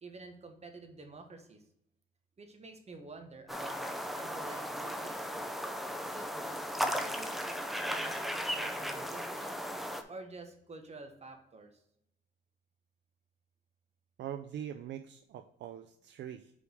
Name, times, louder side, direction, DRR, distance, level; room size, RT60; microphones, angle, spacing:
voice 1, 0.0-1.6 2.4-5.5 6.0-7.4 7.9-9.7 10.1-11.8, right 3 dB, 35° right, 5 dB, 1.3 m, -50 dB
sound 1, 3.5-10.0, equal, ahead, 0.7 m, -36 dB
voice 2, 14.2-16.5, right 10 dB, 65° right, 8 dB, 0.4 m, -43 dB
5.1 x 4.9 x 4.9 m, 0.77 s
cardioid pair, 90°, 20 cm